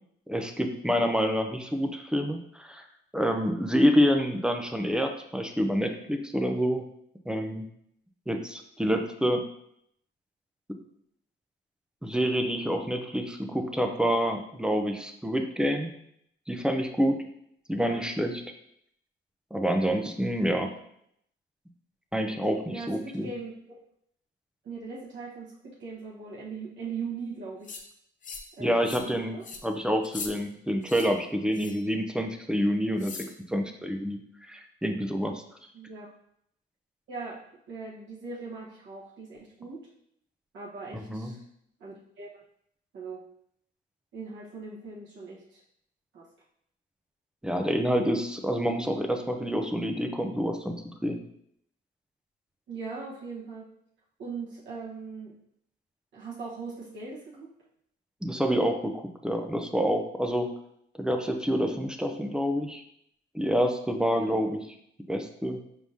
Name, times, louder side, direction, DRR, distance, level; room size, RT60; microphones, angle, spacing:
voice 1, 0.3-2.8 3.1-6.8 7.3-7.7 8.3-9.4 12.0-15.9 16.5-17.2 17.7-18.3 19.5-20.7 22.1-23.3 28.6-33.1 33.5-34.2 34.5-35.4 40.9-41.3 47.4-50.7 51.0-51.2 58.2-60.5 61.0-62.8 63.3-64.6 65.1-65.6, equal, 5° right, 4 dB, 0.5 m, -27 dB
voice 2, 17.7-18.1 22.7-23.8 24.6-27.7 28.5-28.8 29.0-29.5 35.7-36.1 37.1-37.4 37.7-39.9 40.5-41.4 41.8-42.3 42.9-43.2 44.1-45.6 46.1-46.3 52.7-53.7 54.2-55.3 56.1-57.5 64.1-64.4, right 4 dB, 70° right, -6 dB, 1.3 m, -40 dB
sound 1, 27.6-27.8 28.2-28.5 28.8-29.1 29.4-29.6 30.0-30.3 30.8-31.1 31.5-31.8 33.0-33.3, left 5 dB, 40° left, 0.6 m, -40 dB
4.7 x 3.6 x 2.7 m, 0.73 s
cardioid pair, 90°, 20 cm